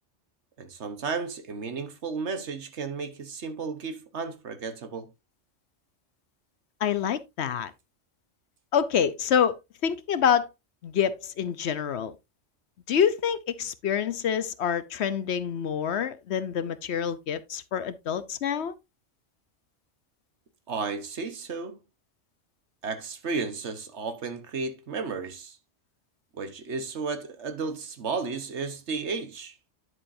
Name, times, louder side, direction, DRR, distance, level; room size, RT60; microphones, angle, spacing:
voice 1, 0.6-5.1 20.7-21.8 22.8-25.6 26.3-29.6, right 4 dB, 70° right, 1.4 m, -33 dB
voice 2, 6.8-7.7 8.7-9.6 9.8-10.5 10.8-12.1 12.9-18.7, left 8 dB, 65° left, 1.0 m, -26 dB
10.0 x 7.2 x 2.6 m
omnidirectional pair, 1.2 m